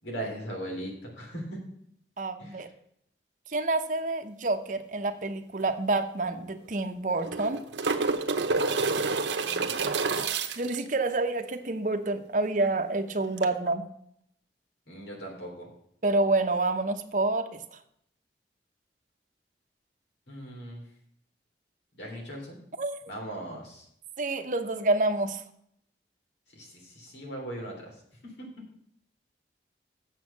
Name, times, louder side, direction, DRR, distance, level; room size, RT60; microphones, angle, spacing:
voice 1, 0.0-1.6 2.4-2.7 9.4-9.9 14.9-15.7 20.3-20.9 22.0-22.6 23.1-23.9 26.5-28.5, right 1 dB, 85° left, 0 dB, 3.3 m, -39 dB
voice 2, 2.2-2.7 3.5-7.6 10.6-13.9 16.0-17.6 22.8-23.0 24.2-25.4, right 2 dB, 45° right, 8 dB, 0.7 m, -28 dB
sound 1, 5.6-5.7 6.0-6.1 7.1-10.8 13.4-13.5, right 4 dB, 90° right, 0.8 m, -28 dB
7.4 x 6.3 x 7.3 m, 0.71 s
head